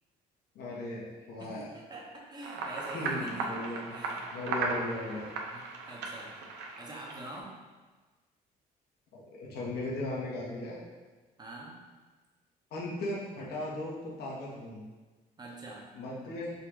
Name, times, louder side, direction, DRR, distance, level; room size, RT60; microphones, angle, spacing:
voice 1, 0.5-1.7 2.9-4.0 4.3-5.3 9.1-10.8 12.7-14.8 15.9-16.5, left 2 dB, 70° left, -5 dB, 1.2 m, -37 dB
voice 2, 1.4-4.3 5.1-5.2 5.5-6.3 6.8-7.5 11.4-11.8 15.4-15.9, right 2 dB, 25° right, -2 dB, 0.9 m, -45 dB
sound 1, 2.4-7.4, right 3 dB, 90° right, 0.6 m, -37 dB
3.8 x 2.4 x 4.6 m, 1.3 s
cardioid pair, 110°, 17 cm